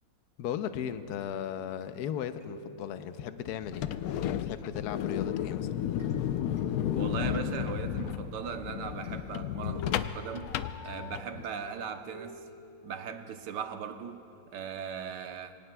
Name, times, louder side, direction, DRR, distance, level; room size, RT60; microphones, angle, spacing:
voice 1, 0.4-3.9 4.2-5.7, left 9 dB, 65° left, 1.1 m, -36 dB
sound 1, 1.2-14.0, right 1 dB, 35° right, 4.2 m, -54 dB
sound 2, 3.6-11.5, left 10 dB, 85° left, 0.7 m, -33 dB
voice 2, 6.9-10.5 10.8-12.5 12.8-15.6, right 7 dB, 70° right, 1.4 m, -38 dB
26.5 x 24.5 x 2.2 m
omnidirectional pair, 2.1 m